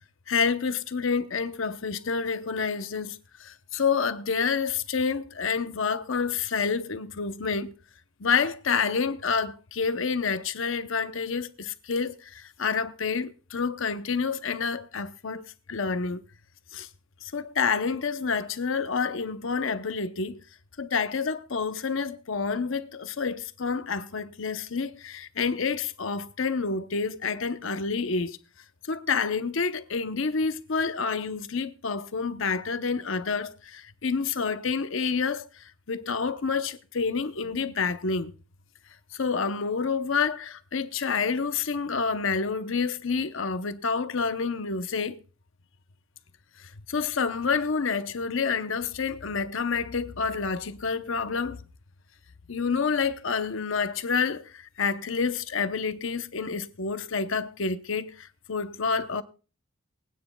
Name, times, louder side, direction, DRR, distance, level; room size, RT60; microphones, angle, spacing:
voice 1, 0.3-7.7 8.2-16.2 16.7-16.9 17.2-20.4 20.8-28.4 28.9-38.3 39.1-45.2 46.6-51.6 52.5-59.2, left 5 dB, 70° left, 0.8 m, -28 dB
23.0 x 9.4 x 2.3 m
head